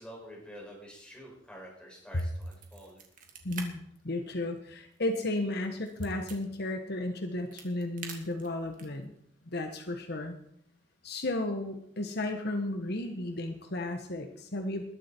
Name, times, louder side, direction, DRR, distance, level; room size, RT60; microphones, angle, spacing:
voice 1, 0.0-3.0, equal, 5° left, -2 dB, 6.6 m, -48 dB
sound 1, 2.1-3.7 4.0-4.1 4.6-6.4 7.2-9.0, right 6 dB, 45° right, 2.8 m, -46 dB
voice 2, 3.4-9.1 9.5-10.4 11.0-14.9, left 1 dB, 60° left, 5 dB, 1.4 m, -34 dB
21.0 x 11.5 x 4.6 m, 0.70 s
head